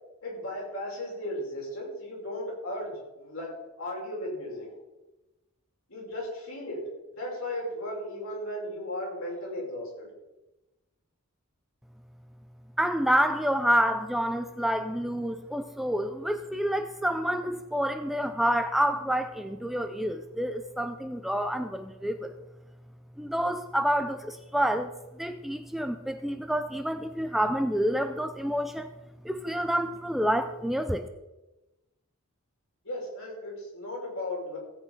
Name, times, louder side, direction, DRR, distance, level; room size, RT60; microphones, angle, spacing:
voice 1, 0.2-4.8 5.9-6.8 7.1-10.1 32.8-34.6, left 1 dB, 65° left, -3 dB, 5.8 m, -36 dB
voice 2, 12.8-22.3 23.2-24.9 25.2-28.9 29.2-31.0, equal, ahead, 7 dB, 0.5 m, -28 dB
16.0 x 8.7 x 5.6 m, 1.0 s
head